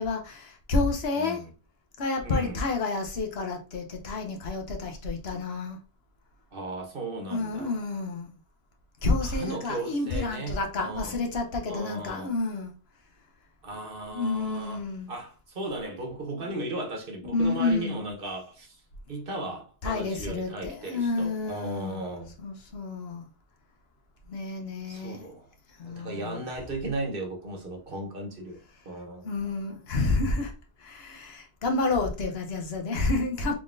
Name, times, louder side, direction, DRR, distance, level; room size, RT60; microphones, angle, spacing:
voice 1, 0.0-1.4 2.0-5.8 7.3-8.3 9.0-12.7 14.1-15.1 17.2-18.0 19.8-22.0 22.4-23.3 24.3-25.3 25.8-26.4 29.2-30.5 30.8-33.5, left 3 dB, 65° left, 1.0 m, -29 dB
voice 2, 1.1-1.5 2.2-2.6 6.5-7.8 9.2-11.2 11.7-12.3 13.6-18.8 19.1-22.3 24.9-25.5 25.8-28.6 28.8-29.3, right 2 dB, 55° right, 1.1 m, -36 dB
3.7 x 3.6 x 2.5 m
omnidirectional pair, 1.2 m